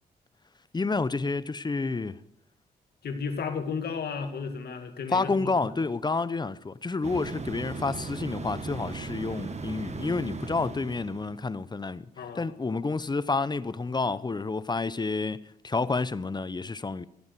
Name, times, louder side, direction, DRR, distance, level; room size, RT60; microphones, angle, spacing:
voice 1, 0.7-2.2 5.1-12.1 12.3-17.1, left 3 dB, 25° left, 0.7 m, -29 dB
voice 2, 3.0-5.7 12.2-12.8, left 5 dB, 70° left, 2.0 m, -34 dB
sound 1, 7.0-11.5, right 3 dB, 40° right, 1.4 m, -37 dB
14.5 x 8.7 x 6.6 m
cardioid pair, 60°, 17 cm